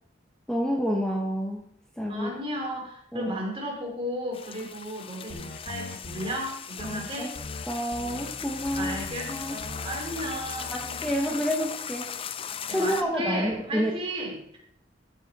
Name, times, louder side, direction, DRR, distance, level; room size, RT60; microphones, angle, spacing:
voice 1, 0.5-1.7 2.0-2.3 3.1-3.4 6.8-7.3 7.7-9.0 9.3-9.6 10.2-10.4 10.7-12.1 12.7-13.9, equal, 5° left, -1 dB, 1.0 m, -29 dB
voice 2, 2.1-7.3 8.7-11.5 12.7-14.6, equal, 30° right, -1 dB, 3.1 m, -34 dB
sound 1, 4.3-13.0, left 8 dB, 30° left, 0.4 m, -38 dB
sound 2, 5.3-6.3 6.8-7.1 7.3-7.6 7.9-11.2, left 2 dB, 50° left, 0.9 m, -41 dB
14.0 x 5.6 x 4.1 m, 0.72 s
head